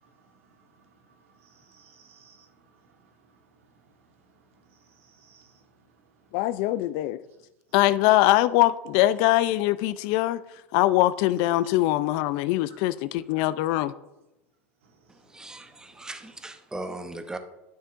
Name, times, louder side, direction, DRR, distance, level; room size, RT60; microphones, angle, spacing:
voice 1, 0.0-3.3 4.5-5.6 14.8-14.9, right 5 dB, 80° right, 1.4 m, -60 dB
voice 2, 6.3-7.2 7.7-10.4 10.7-13.9, left 15 dB, 60° left, 0.4 m, -22 dB
voice 3, 15.1-17.4, right 2 dB, 10° right, 0.8 m, -38 dB
12.0 x 6.5 x 2.5 m
hypercardioid pair, 90°, 7 cm